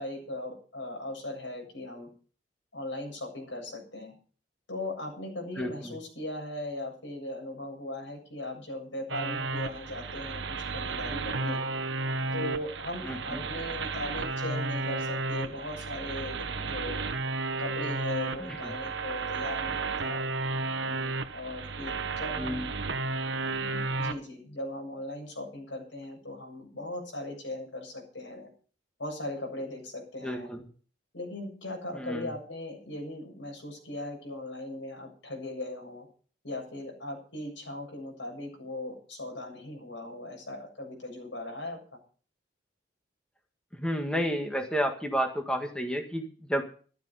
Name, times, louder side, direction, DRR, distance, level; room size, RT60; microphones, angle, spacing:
voice 1, 0.0-2.1 2.7-4.1 4.7-11.6 12.3-17.0 17.6-20.3 20.8-22.7 23.4-28.5 29.0-30.5 31.1-36.1 36.4-41.8, left 1 dB, 85° left, 1 dB, 7.5 m, -38 dB
sound 1, 9.1-24.1, right 3 dB, 80° right, 1.2 m, -33 dB
voice 2, 13.0-13.4 18.5-18.6 22.4-22.7 30.2-30.6 31.9-32.2 43.8-46.6, equal, 5° left, 3 dB, 1.6 m, -31 dB
14.0 x 12.0 x 5.5 m, 0.41 s
head